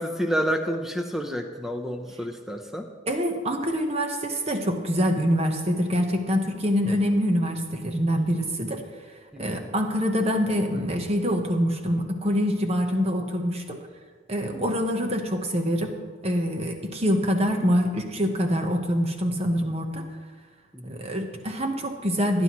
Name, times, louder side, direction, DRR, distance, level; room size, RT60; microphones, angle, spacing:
voice 1, 0.0-2.9 9.3-9.7 14.4-14.7 20.7-21.0, equal, ahead, 4 dB, 0.8 m, -30 dB
voice 2, 3.1-8.8 9.4-13.8 14.3-16.0 16.2-20.1 20.8-22.4, equal, 30° right, 4 dB, 1.1 m, -25 dB
18.0 x 9.9 x 3.1 m, 1.5 s
head